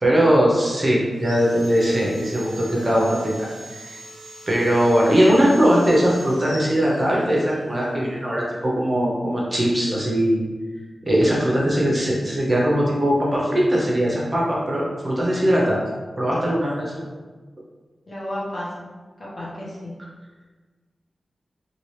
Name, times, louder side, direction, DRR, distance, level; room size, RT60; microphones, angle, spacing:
voice 1, 0.0-4.0 4.5-10.4 11.0-15.8 16.2-17.0, equal, 25° right, -4 dB, 0.7 m, -20 dB
Sawing, 1.1-7.6, equal, 65° left, 1.2 m, -42 dB
voice 2, 18.1-18.9 19.2-19.9, left 1 dB, 40° left, -7 dB, 1.1 m, -33 dB
2.9 x 2.7 x 3.1 m, 1.3 s
wide cardioid pair, 100°, 0 cm